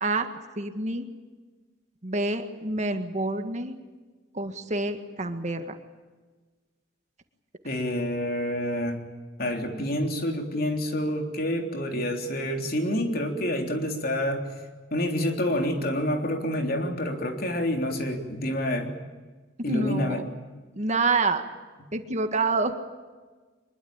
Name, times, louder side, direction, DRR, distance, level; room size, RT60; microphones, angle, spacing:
voice 1, 0.6-1.1 2.0-3.8 4.3-5.8 19.7-20.2 20.8-21.4 21.9-22.7, right 3 dB, 35° right, 7 dB, 1.7 m, -27 dB
voice 2, 7.6-9.0 9.4-14.4 14.9-18.9 19.6-20.2, equal, 50° left, 4 dB, 3.5 m, -28 dB
24.0 x 22.0 x 8.8 m, 1.3 s
head